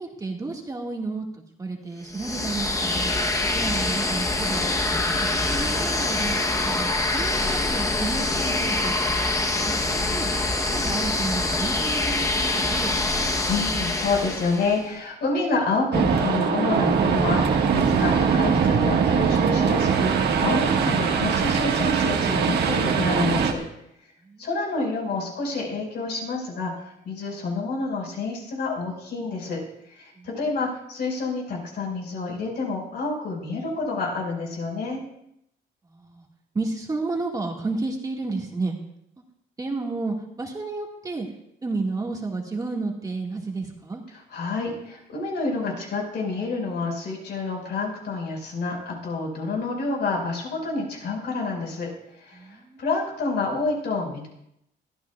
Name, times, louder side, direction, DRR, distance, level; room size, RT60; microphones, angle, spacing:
voice 1, 0.0-3.1 3.5-6.4 6.6-8.9 10.1-13.2 24.3-24.5 30.2-30.3 35.9-36.2 36.5-38.8 39.6-41.3 41.6-44.0 52.3-52.8, right 3 dB, 20° right, 0 dB, 1.7 m, -31 dB
sound 1, 2.1-14.9, left 2 dB, 15° left, 0.9 m, -25 dB
voice 2, 13.5-23.6 24.4-29.6 29.9-35.0 44.1-51.9 52.2-54.3, left 3 dB, 65° left, 0 dB, 5.0 m, -28 dB
sound 2, 15.9-23.5, right 6 dB, 65° right, 1.5 m, -21 dB
22.5 x 14.5 x 2.3 m, 0.77 s
cardioid pair, 150°, 19 cm